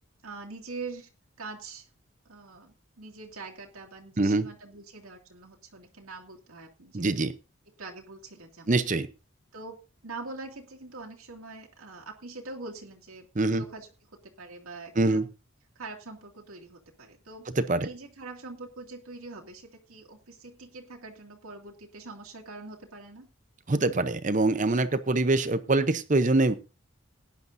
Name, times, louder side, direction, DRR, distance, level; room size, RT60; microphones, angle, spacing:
voice 1, 0.2-1.1 1.4-1.9 2.2-7.3 7.8-8.8 9.5-9.8 10.0-13.9 14.4-15.3 15.8-17.5 17.8-23.3, right 3 dB, 85° right, -1 dB, 2.4 m, -43 dB
voice 2, 6.9-7.3 8.7-9.1 13.4-13.6 15.0-15.3 17.6-17.9 23.7-26.6, right 2 dB, 35° right, 12 dB, 0.7 m, -24 dB
18.0 x 10.5 x 2.7 m, 0.30 s
head